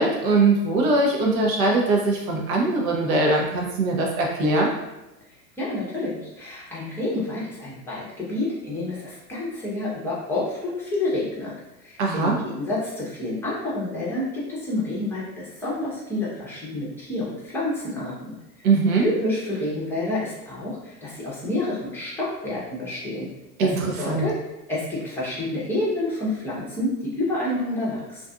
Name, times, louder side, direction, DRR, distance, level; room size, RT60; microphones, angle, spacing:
voice 1, 0.0-4.7 12.0-12.3 18.6-19.0 23.6-24.3, right 3 dB, 55° right, 0 dB, 0.8 m, -21 dB
voice 2, 5.6-11.5 11.8-18.3 19.0-23.3 23.6-24.4 24.7-28.2, left 2 dB, 5° left, -7 dB, 0.7 m, -29 dB
2.6 x 2.5 x 2.3 m, 0.98 s
hypercardioid pair, 100°, 50 cm